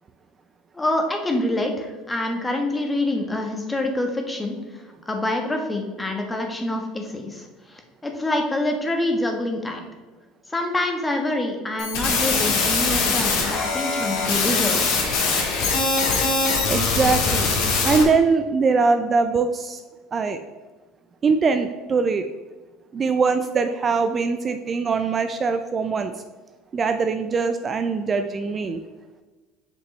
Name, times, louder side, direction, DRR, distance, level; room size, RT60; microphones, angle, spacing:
voice 1, 0.7-4.6 5.1-9.8 10.5-14.9, left 1 dB, 15° left, 3 dB, 1.4 m, -26 dB
sound 1, 11.8-18.0, left 4 dB, 70° left, 1.8 m, -22 dB
voice 2, 16.7-17.5 17.8-19.8 20.1-20.4 21.2-22.2 22.9-26.1 26.7-28.8, right 4 dB, 30° right, 8 dB, 0.5 m, -22 dB
7.7 x 5.3 x 3.2 m, 1.3 s
supercardioid pair, 90°, 0 cm